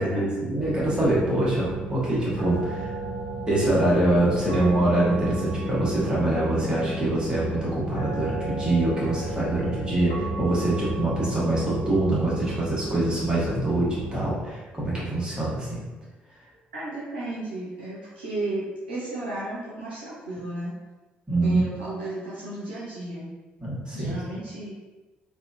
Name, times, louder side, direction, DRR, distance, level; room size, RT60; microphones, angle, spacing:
voice 1, 0.0-2.9 3.5-15.8 21.3-21.6 23.6-24.2, right 1 dB, 15° right, -7 dB, 1.2 m, -24 dB
sound 1, 0.6-14.4, right 1 dB, 70° left, 0.8 m, -33 dB
voice 2, 16.7-20.7 21.4-23.3 23.9-24.7, right 2 dB, 80° right, -9 dB, 0.6 m, -33 dB
2.8 x 2.4 x 2.4 m, 1.2 s
figure-of-eight pair, 45°, 5 cm